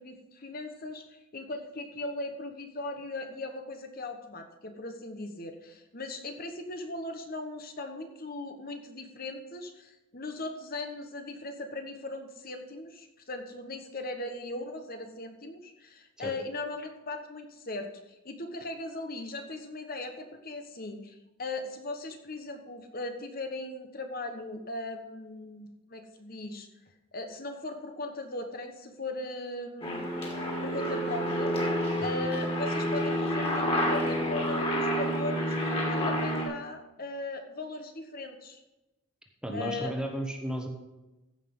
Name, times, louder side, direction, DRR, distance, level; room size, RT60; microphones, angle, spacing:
voice 1, 0.0-26.7 27.1-30.1 30.6-35.6 35.9-38.6 39.5-39.9, left 2 dB, 45° left, 6 dB, 1.1 m, -38 dB
Aircraft, 29.8-36.5, equal, 25° left, 2.7 m, -29 dB
voice 2, 39.4-40.7, right 1 dB, 5° right, 3 dB, 1.1 m, -34 dB
15.0 x 5.8 x 5.4 m, 1.0 s
head